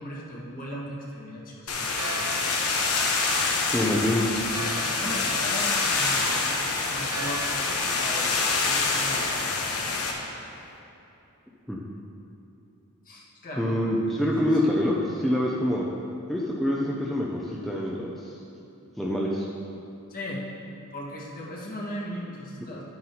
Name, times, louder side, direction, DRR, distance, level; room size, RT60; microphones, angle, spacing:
voice 1, 0.0-1.8 4.7-6.6 6.9-7.5 7.9-9.7 13.0-13.9 14.4-14.6 20.1-20.5 20.9-22.8, equal, 40° left, -4 dB, 1.5 m, -37 dB
sound 1, 1.7-10.1, left 3 dB, 80° left, 1.1 m, -26 dB
Church bell, 1.9-10.8, right 2 dB, 85° right, 1.1 m, -41 dB
voice 2, 3.7-4.3 11.7-11.8 13.6-15.9 16.3-18.4 19.0-19.5, left 1 dB, ahead, -5 dB, 0.6 m, -26 dB
11.5 x 9.5 x 2.9 m, 2.8 s
head